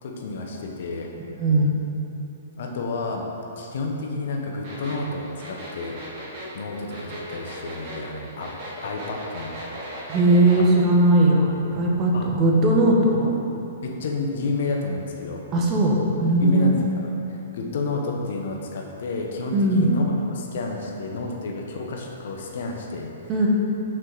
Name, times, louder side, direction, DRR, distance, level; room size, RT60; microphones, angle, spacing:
voice 1, 0.0-1.1 2.6-3.3 3.6-6.0 6.5-8.5 8.8-9.7 10.6-10.7 12.1-12.3 13.8-15.4 16.4-23.3, left 3 dB, 65° left, 1 dB, 0.9 m, -30 dB
voice 2, 1.4-1.8 10.1-13.3 15.5-16.8 19.5-19.9 23.3-23.5, right 1 dB, 25° right, -2 dB, 1.0 m, -19 dB
sound 1, 4.6-10.6, right 1 dB, 45° right, 1.5 m, -38 dB
6.1 x 4.6 x 4.0 m, 2.8 s
hypercardioid pair, 140°, 0 cm